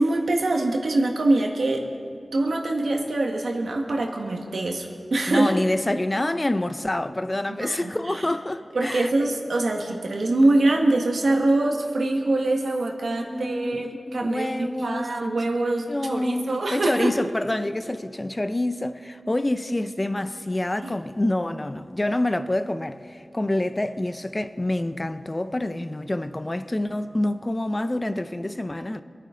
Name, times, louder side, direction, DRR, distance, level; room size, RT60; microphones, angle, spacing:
voice 1, 0.0-1.8 2.3-5.5 7.5-7.9 8.7-17.1 20.8-21.0, right 2 dB, 85° right, 1.6 m, -24 dB
voice 2, 5.3-9.3 13.0-15.3 15.9-29.0, left 1 dB, 25° left, 0.5 m, -27 dB
25.5 x 9.4 x 3.8 m
wide cardioid pair, 80°, 0 cm